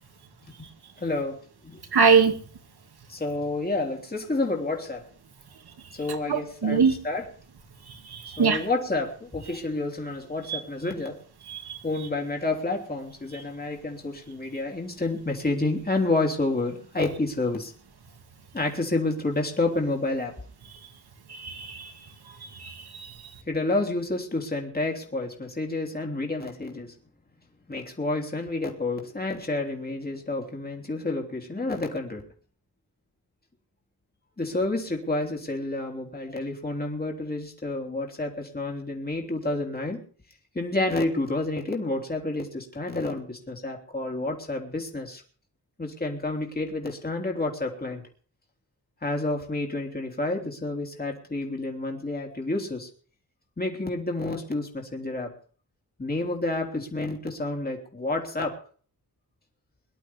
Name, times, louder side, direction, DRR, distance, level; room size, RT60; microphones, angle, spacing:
voice 1, 1.0-1.8 3.1-5.0 5.9-7.3 8.4-11.2 11.8-17.7 18.5-20.3 23.5-26.9 27.7-32.2 34.4-40.0 40.5-45.2 45.8-48.0 49.0-52.9 53.6-55.3 56.0-58.5, left 2 dB, 25° left, 1 dB, 3.2 m, -29 dB
voice 2, 1.9-2.3 6.3-6.9 8.1-8.6 10.5-10.6 11.5-11.8 21.3-21.9 22.6-23.1, right 5 dB, 70° right, 5 dB, 2.5 m, -22 dB
23.5 x 11.5 x 3.6 m, 0.43 s
wide cardioid pair, 115°, 39 cm